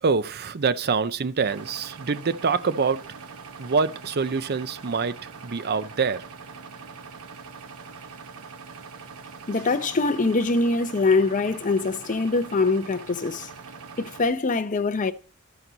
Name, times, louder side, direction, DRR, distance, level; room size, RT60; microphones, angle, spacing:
voice 1, 0.0-3.0 3.6-5.2 5.4-6.2, right 5 dB, 45° right, 0.6 m, -25 dB
sound 1, 1.4-14.3, right 5 dB, 75° right, 0.9 m, -43 dB
voice 2, 9.5-13.5 14.0-15.1, left 3 dB, 35° left, 0.7 m, -23 dB
12.5 x 6.1 x 4.0 m
head